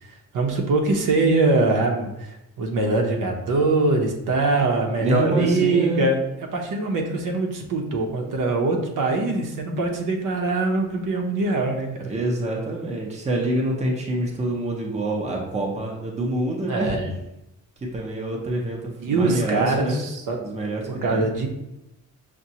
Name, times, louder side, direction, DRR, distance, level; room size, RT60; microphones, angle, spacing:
voice 1, 0.0-6.2 6.5-12.1 16.7-17.2 19.0-20.4 21.0-21.5, right 3 dB, 75° right, 2 dB, 0.7 m, -23 dB
voice 2, 5.0-6.1 12.1-17.0 17.9-20.0 20.4-21.3, right 1 dB, 20° right, 0 dB, 0.6 m, -26 dB
6.0 x 2.2 x 2.7 m, 0.90 s
wide cardioid pair, 170°, 32 cm